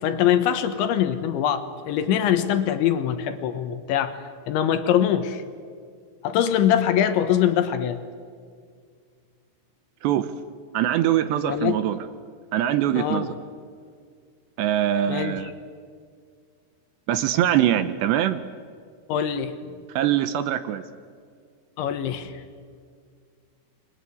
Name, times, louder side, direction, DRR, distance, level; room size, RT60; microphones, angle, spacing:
voice 1, 0.0-4.2 4.5-5.4 6.2-8.0 11.4-11.8 12.9-13.3 15.1-15.5 19.1-19.5 21.8-22.3, left 10 dB, 70° left, 9 dB, 3.4 m, -23 dB
voice 2, 10.7-12.0 12.5-13.3 14.6-15.5 17.1-18.4 20.0-20.8, right 11 dB, 75° right, 12 dB, 2.8 m, -22 dB
29.5 x 23.5 x 8.5 m, 2.1 s
omnidirectional pair, 5.9 m